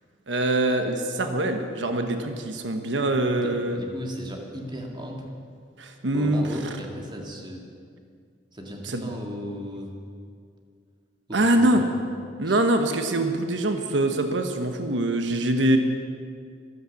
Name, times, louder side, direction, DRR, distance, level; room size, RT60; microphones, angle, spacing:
voice 1, 0.3-3.8 5.8-6.8 8.8-9.1 11.3-11.8 12.4-15.8, right 1 dB, 90° right, 6 dB, 1.1 m, -24 dB
voice 2, 3.4-5.2 6.1-7.6 8.5-9.9 11.3-11.9 12.4-12.6, equal, 25° right, 1 dB, 2.1 m, -36 dB
14.0 x 12.5 x 7.1 m, 2.2 s
head